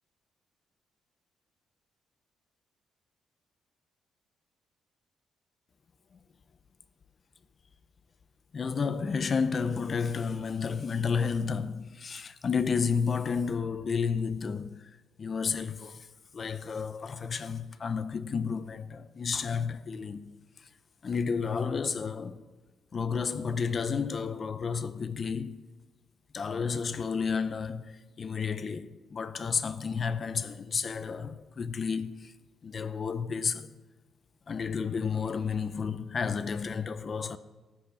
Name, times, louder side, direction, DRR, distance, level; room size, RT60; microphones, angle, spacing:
voice 1, 8.5-16.1 16.3-20.7 21.0-22.4 22.9-25.6 26.3-32.3 32.6-33.7 34.5-37.4, left 5 dB, 35° left, 0.5 m, -31 dB
13.5 x 8.6 x 6.4 m
cardioid pair, 140°, 0 cm